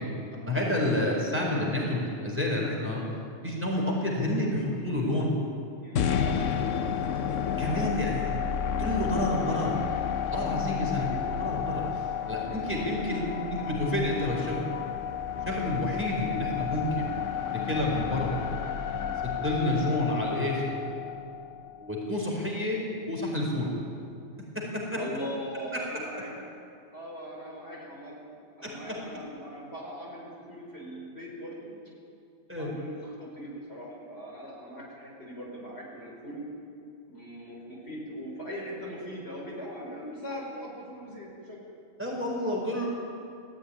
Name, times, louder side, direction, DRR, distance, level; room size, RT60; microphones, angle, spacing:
voice 1, 0.3-3.0 3.4-5.3 7.6-8.4 8.8-9.8 10.3-11.8 12.3-13.2 13.6-14.7 15.5-17.1 17.5-18.4 19.2-20.7 21.7-23.7 24.5-25.0 25.7-25.8 28.6-29.0 32.5-32.7 42.0-42.9, left 1 dB, 10° right, -3 dB, 4.5 m, -29 dB
voice 2, 5.8-6.5 7.6-8.0 10.8-11.3 12.2-13.2 25.0-26.3 26.9-31.7 32.5-36.4 37.1-41.6, equal, 55° left, -3 dB, 5.2 m, -41 dB
sound 1, 6.0-22.1, left 8 dB, 75° left, 1.2 m, -31 dB
18.5 x 14.5 x 9.9 m, 2.5 s
omnidirectional pair, 1.3 m